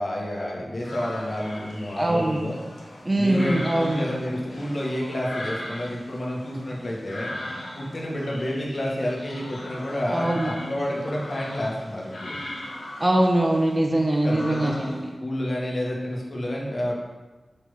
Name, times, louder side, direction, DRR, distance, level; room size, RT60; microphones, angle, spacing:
voice 1, 0.0-2.6 3.2-7.3 7.8-12.3 14.2-14.8 15.2-16.9, left 1 dB, 60° left, -3 dB, 1.7 m, -29 dB
sound 1, 0.8-15.1, left 1 dB, 90° left, 1.3 m, -39 dB
voice 2, 2.0-2.4 3.0-4.0 10.1-10.5 13.0-14.9, right 1 dB, 30° right, 1 dB, 1.1 m, -22 dB
7.3 x 3.5 x 5.7 m, 1.2 s
cardioid pair, 50°, 0 cm